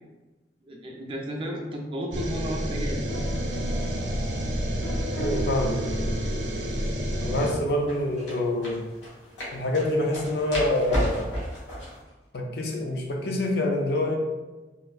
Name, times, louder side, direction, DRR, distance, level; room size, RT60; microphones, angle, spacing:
voice 1, 0.7-3.4, equal, 30° right, 0 dB, 0.3 m, -33 dB
sound 1, 2.1-7.5, equal, 85° right, 0.5 m, -29 dB
sound 2, 3.0-6.9 7.9-8.3 8.9-9.0 9.3-9.4 9.7-9.8 10.1-10.3 12.1-12.2, right 1 dB, 35° left, 0.8 m, -40 dB
sound 3, 3.1-12.0, equal, 90° left, 1.2 m, -37 dB
voice 2, 5.2-6.2 7.2-8.8 9.5-11.3 12.3-14.2, left 1 dB, 60° left, 1 dB, 0.4 m, -26 dB
3.2 x 2.5 x 2.3 m, 1.1 s
head